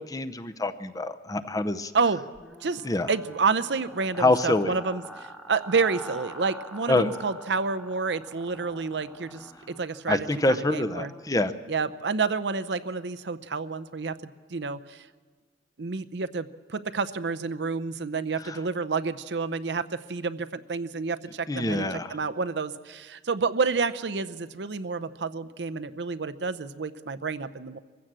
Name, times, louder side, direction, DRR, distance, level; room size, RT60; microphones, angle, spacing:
voice 1, 0.0-1.9 2.8-3.1 4.2-4.7 6.9-7.1 10.1-11.5 18.5-18.6 21.5-22.2, left 2 dB, 20° left, 10 dB, 0.7 m, -26 dB
sound 1, 2.3-11.2, right 1 dB, ahead, 1.3 m, -45 dB
voice 2, 3.1-11.1 11.7-15.1 15.8-27.8, right 4 dB, 75° right, 12 dB, 0.7 m, -29 dB
23.0 x 15.5 x 7.5 m, 1.4 s
head